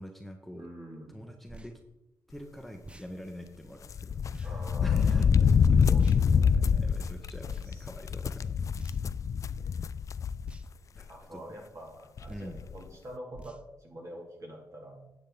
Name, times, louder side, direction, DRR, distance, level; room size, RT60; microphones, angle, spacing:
voice 1, 0.0-0.7 1.1-1.8 2.3-5.8 6.8-8.5 11.0-11.6 12.3-12.7, equal, ahead, 4 dB, 0.9 m, -45 dB
voice 2, 0.5-1.2 4.4-5.2 5.9-6.9 7.7-7.9 9.3-9.7 11.1-15.0, right 1 dB, 50° right, 0 dB, 2.8 m, -46 dB
sound 1, 1.5-1.7 2.8-3.1 4.3-4.5 6.0-6.2 7.4-7.7 8.7-9.2 10.4-10.7 12.2-12.5 13.3-13.6, right 2 dB, 15° right, 0.6 m, -47 dB
sound 2, 3.9-10.6 11.0-11.1 12.2-12.3 12.5-12.8, left 6 dB, 50° left, 0.3 m, -26 dB
9.9 x 7.1 x 4.0 m, 0.94 s
cardioid pair, 75°, 7 cm